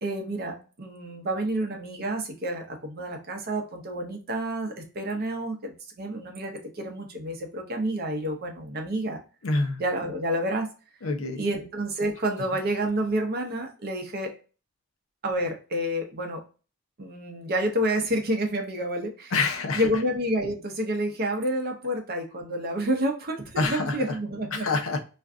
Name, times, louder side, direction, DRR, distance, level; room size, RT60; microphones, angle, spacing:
voice 1, 0.0-9.2 9.8-10.7 11.4-14.3 15.2-16.4 17.0-19.3 19.7-24.7, right 1 dB, 45° right, 0.7 m, -29 dB
voice 2, 9.4-9.8 11.0-11.5 19.3-19.8 23.6-24.0 24.5-25.0, left 3 dB, 70° left, 0.6 m, -26 dB
2.5 x 2.3 x 3.4 m
head